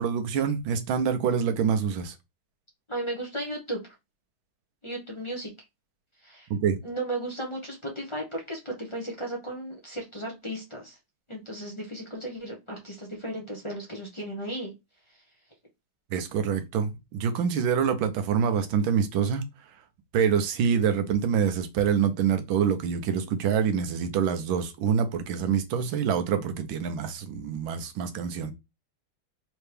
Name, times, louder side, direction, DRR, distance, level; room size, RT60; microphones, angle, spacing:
voice 1, 0.0-2.1 6.5-6.8 16.1-19.4 20.1-28.5, right 7 dB, 75° right, 1.5 m, -26 dB
voice 2, 2.9-3.8 4.8-5.5 6.2-6.5 6.8-11.0 11.3-14.7, right 1 dB, 25° left, 0.6 m, -35 dB
4.4 x 3.0 x 3.3 m
omnidirectional pair, 2.2 m